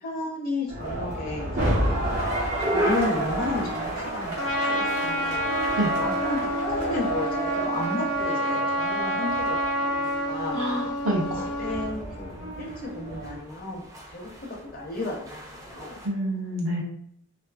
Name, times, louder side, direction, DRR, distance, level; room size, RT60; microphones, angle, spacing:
voice 1, 0.0-1.7 2.6-5.5 6.0-10.6 11.6-13.8 14.1-16.0, left 2 dB, 40° left, -1 dB, 0.5 m, -33 dB
sound 1, 0.7-13.4, right 1 dB, 85° right, 1.0 m, -31 dB
sound 2, 2.0-16.1, equal, 15° right, 0.3 m, -38 dB
Trumpet, 4.4-12.0, equal, 85° left, 0.6 m, -28 dB
voice 2, 10.5-11.5 16.0-16.8, right 1 dB, 65° right, -2 dB, 0.6 m, -27 dB
2.6 x 2.3 x 2.2 m, 0.71 s
head